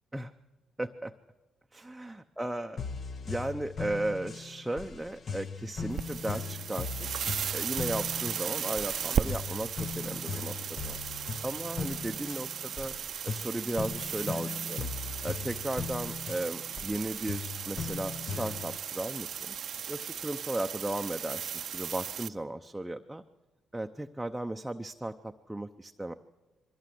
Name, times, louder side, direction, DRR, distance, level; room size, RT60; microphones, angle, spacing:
voice 1, 0.8-1.1 1.7-2.8 3.3-7.1 7.5-11.0 11.4-12.9 13.2-14.9 15.2-19.6 19.9-23.2 23.7-26.1, right 1 dB, 5° right, 4 dB, 0.7 m, -36 dB
sound 1, 2.8-18.8, left 5 dB, 50° left, 1.0 m, -39 dB
sound 2, 5.9-22.3, right 8 dB, 60° right, 0.6 m, -36 dB
22.5 x 15.0 x 7.8 m, 1.1 s
cardioid pair, 90°, 0 cm